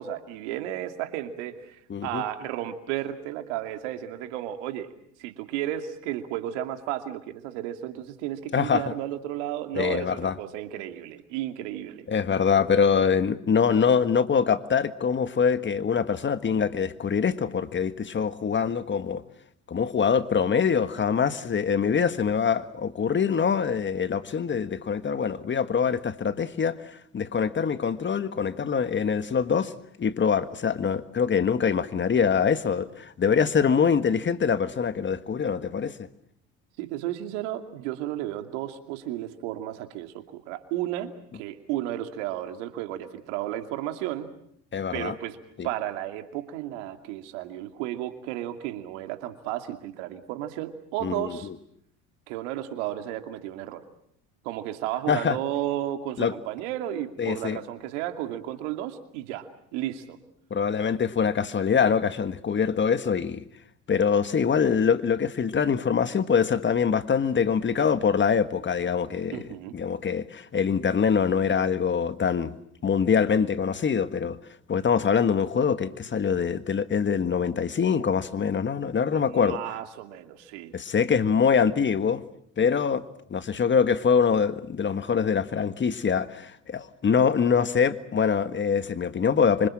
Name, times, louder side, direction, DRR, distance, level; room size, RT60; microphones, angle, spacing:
voice 1, 0.0-4.9 5.2-12.1 36.8-44.3 44.9-45.4 45.6-51.5 52.3-53.8 54.4-60.2 69.3-69.7 79.1-80.7, right 12 dB, 75° right, 2.6 m, -33 dB
voice 2, 1.9-2.2 8.5-8.8 9.7-10.4 12.1-19.2 19.7-29.7 30.0-36.0 44.7-45.2 45.6-45.7 51.0-51.5 55.1-55.4 56.2-56.3 57.2-57.6 60.5-63.4 63.9-72.5 72.8-74.4 74.7-79.6 80.7-82.2 82.6-83.0 83.3-89.7, left 6 dB, 30° left, 1.6 m, -24 dB
27.0 x 25.5 x 7.5 m
hypercardioid pair, 70°, 36 cm